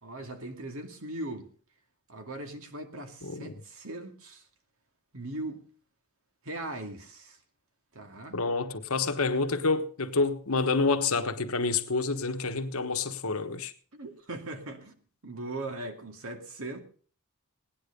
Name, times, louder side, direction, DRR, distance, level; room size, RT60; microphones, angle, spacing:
voice 1, 0.0-1.5 2.1-4.5 5.1-5.6 6.4-7.4 7.9-8.4 13.9-15.0 15.2-16.8, right 2 dB, 65° right, 2.4 m, -39 dB
voice 2, 3.2-3.5 8.3-13.7, left 3 dB, 70° left, 1.3 m, -28 dB
18.0 x 10.0 x 5.2 m
head